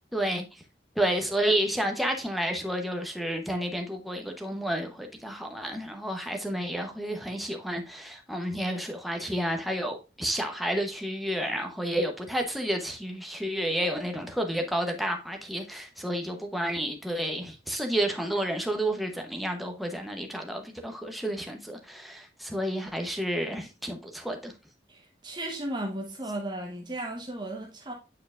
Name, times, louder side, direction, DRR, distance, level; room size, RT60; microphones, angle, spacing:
voice 1, 0.1-0.6 1.0-24.5, right 1 dB, ahead, 0.9 m, -30 dB
voice 2, 24.9-27.9, right 1 dB, 25° right, 1.1 m, -35 dB
8.4 x 4.7 x 2.5 m
head